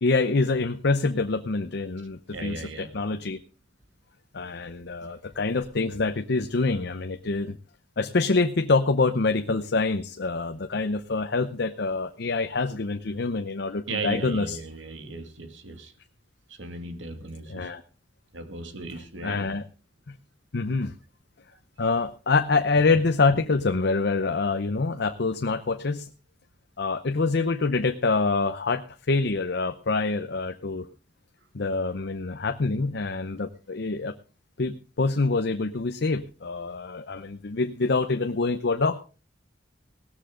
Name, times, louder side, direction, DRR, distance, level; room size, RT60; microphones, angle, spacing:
voice 1, 0.0-3.4 4.3-7.6 8.0-14.6 17.5-17.8 19.2-19.6 20.1-20.2 20.5-20.9 21.8-26.1 26.8-30.9 31.5-34.1 34.6-39.0, left 3 dB, 65° left, 0.7 m, -26 dB
voice 2, 2.3-2.9 13.9-15.9 16.5-17.7 18.3-19.6, right 3 dB, 85° right, 2.3 m, -36 dB
17.5 x 13.5 x 3.8 m
head